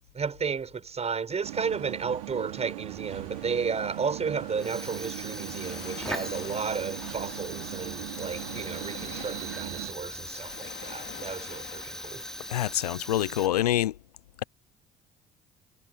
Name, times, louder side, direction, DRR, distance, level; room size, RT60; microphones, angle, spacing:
voice 1, 0.1-12.2, right 5 dB, 35° right, 8.0 m, -33 dB
sound 1, 1.4-9.9, right 22 dB, 70° right, 3.2 m, -39 dB
sound 2, 3.0-12.8, left 15 dB, 55° left, 4.6 m, -48 dB
Fire, 4.5-13.9, equal, ahead, 4.8 m, -40 dB
voice 2, 12.5-13.9, left 13 dB, 80° left, 0.7 m, -26 dB
figure-of-eight pair, 55°, 20 cm